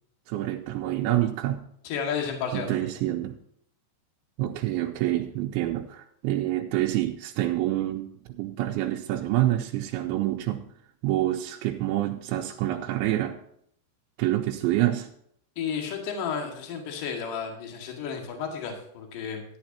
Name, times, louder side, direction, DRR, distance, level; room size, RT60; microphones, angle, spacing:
voice 1, 0.3-1.6 2.5-3.4 4.4-10.6 11.0-13.4 14.2-15.1, right 14 dB, 80° right, 1 dB, 2.8 m, -27 dB
voice 2, 1.8-2.9 15.6-19.4, left 6 dB, 50° left, 2 dB, 3.0 m, -32 dB
13.0 x 11.5 x 2.9 m, 0.69 s
omnidirectional pair, 5.8 m